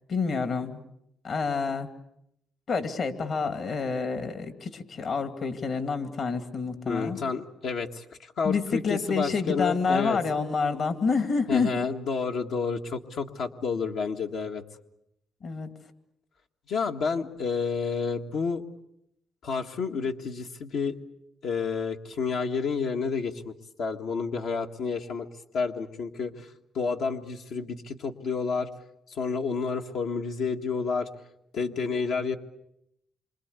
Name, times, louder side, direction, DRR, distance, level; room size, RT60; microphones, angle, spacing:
voice 1, 0.1-0.8 1.2-1.9 2.7-7.2 8.4-11.7 15.4-15.7, left 4 dB, 55° left, 9 dB, 2.6 m, -28 dB
voice 2, 6.9-10.2 11.5-14.6 16.7-18.6 19.4-21.0 21.4-25.3 25.5-28.7 29.1-31.1 31.5-32.4, left 5 dB, 75° left, 3 dB, 1.8 m, -30 dB
27.5 x 25.0 x 8.3 m, 0.78 s
cardioid pair, 90°, 0 cm